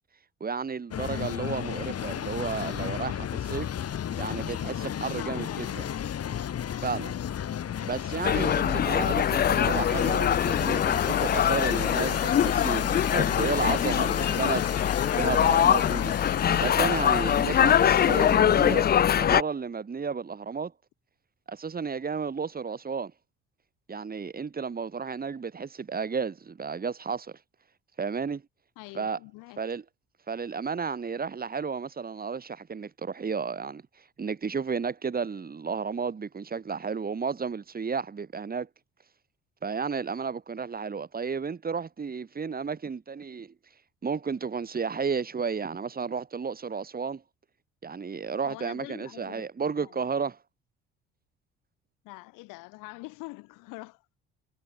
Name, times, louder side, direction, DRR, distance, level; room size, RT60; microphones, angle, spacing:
voice 1, 0.4-3.7 4.2-5.9 6.8-7.1 7.8-14.7 15.1-16.1 16.5-20.7 21.5-23.1 23.9-27.3 28.0-28.4 28.9-29.2 29.6-29.8 30.3-33.8 34.2-38.7 39.6-43.5 44.0-47.2 47.8-50.4, right 5 dB, 25° right, 1.9 m, -32 dB
sound 1, 0.9-19.2, left 9 dB, 45° left, 2.6 m, -34 dB
voice 2, 3.9-4.3 5.2-5.8 28.8-29.6 48.4-50.1 52.0-54.2, left 24 dB, 65° left, 3.7 m, -45 dB
sound 2, 8.2-19.4, left 9 dB, 30° left, 0.5 m, -23 dB
figure-of-eight pair, 50°, 34 cm